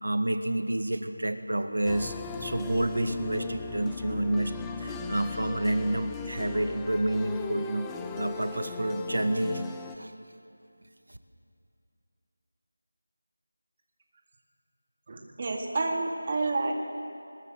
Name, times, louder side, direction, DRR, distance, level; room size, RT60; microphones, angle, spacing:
voice 1, 0.0-4.5 4.8-7.9 8.1-9.6 10.0-10.1, right 1 dB, 90° right, 7 dB, 1.8 m, -29 dB
sound 1, 1.8-10.0, left 4 dB, 5° left, 0.6 m, -38 dB
voice 2, 15.1-16.7, right 3 dB, 30° right, 1 dB, 2.2 m, -29 dB
21.5 x 20.0 x 7.6 m, 2.6 s
figure-of-eight pair, 175°, 0 cm